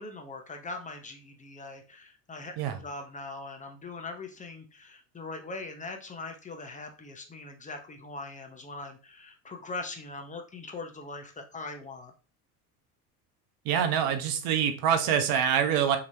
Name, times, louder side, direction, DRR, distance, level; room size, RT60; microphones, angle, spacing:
voice 1, 0.0-2.5 2.8-12.1, left 3 dB, 15° left, 5 dB, 0.7 m, -41 dB
voice 2, 13.6-16.0, right 8 dB, 55° right, 7 dB, 0.9 m, -25 dB
3.9 x 2.9 x 2.7 m, 0.35 s
hypercardioid pair, 80°, 45 cm